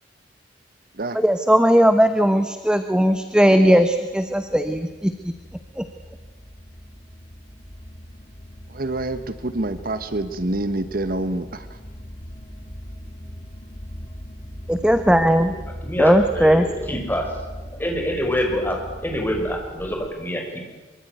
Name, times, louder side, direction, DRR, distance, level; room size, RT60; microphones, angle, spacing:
voice 1, 1.1-5.1 5.8-5.9 14.7-15.5 16.0-16.7, equal, 5° right, 8 dB, 1.1 m, -17 dB
sound 1, 2.6-20.1, equal, 35° left, 2.6 m, -40 dB
voice 2, 8.7-11.8, right 2 dB, 50° right, 11 dB, 1.3 m, -27 dB
voice 3, 15.8-17.4 17.7-20.7, equal, 10° left, 2 dB, 5.5 m, -26 dB
24.0 x 24.0 x 9.3 m, 1.2 s
head